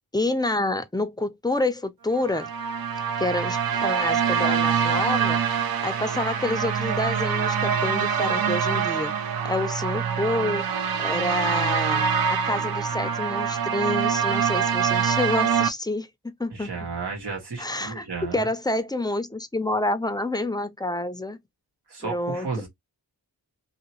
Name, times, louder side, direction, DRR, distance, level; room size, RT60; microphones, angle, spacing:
voice 1, 0.1-2.5 3.2-5.4 5.8-9.1 9.4-10.6 11.0-16.1 16.4-16.7 17.6-18.1 18.3-21.4 22.0-22.5, left 2 dB, 10° left, 0.4 m, -28 dB
sound 1, 2.2-15.7, right 7 dB, 70° right, 0.6 m, -25 dB
voice 2, 16.5-18.5 21.9-22.7, right 4 dB, 90° right, 1.6 m, -33 dB
2.9 x 2.8 x 2.9 m
wide cardioid pair, 125°, 38 cm